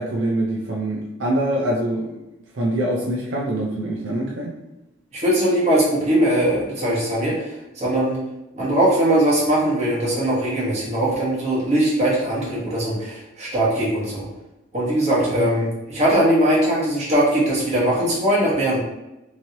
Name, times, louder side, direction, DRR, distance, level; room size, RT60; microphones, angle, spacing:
voice 1, 0.0-2.2 2.5-4.5 15.4-15.5, right 1 dB, 70° right, -3 dB, 0.5 m, -24 dB
voice 2, 5.1-8.2 8.5-14.3 14.7-18.8, right 1 dB, 35° right, -6 dB, 1.2 m, -20 dB
3.1 x 2.6 x 2.8 m, 0.96 s
head